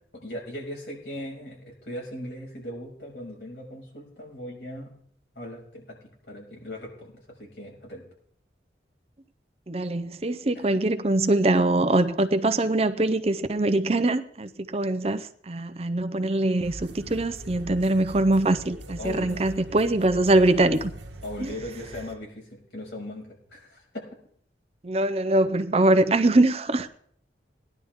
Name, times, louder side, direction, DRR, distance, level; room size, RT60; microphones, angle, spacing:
voice 1, 0.1-4.9 5.3-8.0 10.5-10.6 19.0-19.5 21.2-24.0, left 1 dB, 70° left, 6.2 m, -39 dB
voice 2, 9.7-20.9 21.4-21.5 24.8-27.0, right 2 dB, 35° right, 0.6 m, -23 dB
sound 1, 16.6-22.1, right 1 dB, 80° right, 1.2 m, -42 dB
19.0 x 11.0 x 3.6 m
head